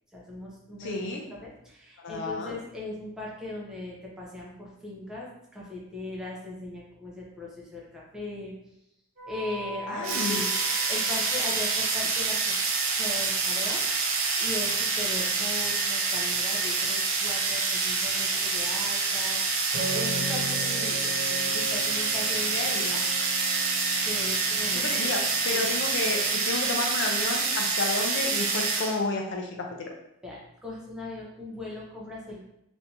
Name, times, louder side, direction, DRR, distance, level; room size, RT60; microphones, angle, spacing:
voice 1, 0.1-8.5 9.3-12.5 12.9-23.0 24.0-24.8 30.2-32.4, left 2 dB, 5° right, -5 dB, 0.7 m, -39 dB
voice 2, 0.8-1.2 2.0-2.6 9.9-10.4 22.5-23.0 24.7-29.9, left 3 dB, 55° left, 2 dB, 0.4 m, -31 dB
sound 1, 9.2-11.8 19.7-28.7, right 1 dB, 35° right, 1.0 m, -39 dB
sound 2, 10.0-29.0, right 4 dB, 60° right, 0.5 m, -27 dB
3.3 x 2.6 x 2.8 m, 0.81 s
head